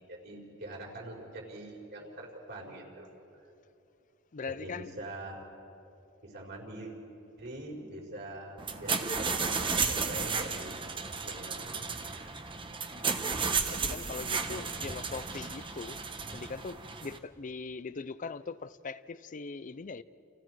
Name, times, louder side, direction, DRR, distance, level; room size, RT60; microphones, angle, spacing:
voice 1, 0.0-3.1 4.5-5.5 6.2-6.9 7.4-9.6 9.9-10.8 11.2-12.3, right 1 dB, 55° right, 4.7 m, -44 dB
voice 2, 4.3-4.9 12.9-13.1 13.7-16.0 16.3-20.0, left 4 dB, 40° left, 0.5 m, -41 dB
sound 1, 8.6-17.2, right 5 dB, 25° right, 1.0 m, -33 dB
29.5 x 29.5 x 4.7 m
head